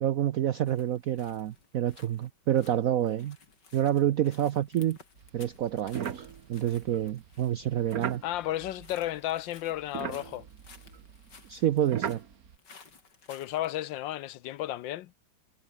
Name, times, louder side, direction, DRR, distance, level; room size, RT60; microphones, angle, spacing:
voice 1, 0.0-3.4 3.7-5.0 5.3-6.2 6.5-8.2 11.5-12.2, right 11 dB, 75° right, 0.8 m, -28 dB
sound 1, 0.7-13.7, left 4 dB, 55° left, 3.7 m, -57 dB
sound 2, 5.2-9.4 9.7-12.6, right 8 dB, 50° right, 1.5 m, -40 dB
voice 2, 8.2-10.5 13.3-15.1, left 14 dB, 75° left, 1.3 m, -33 dB
omnidirectional pair, 2.2 m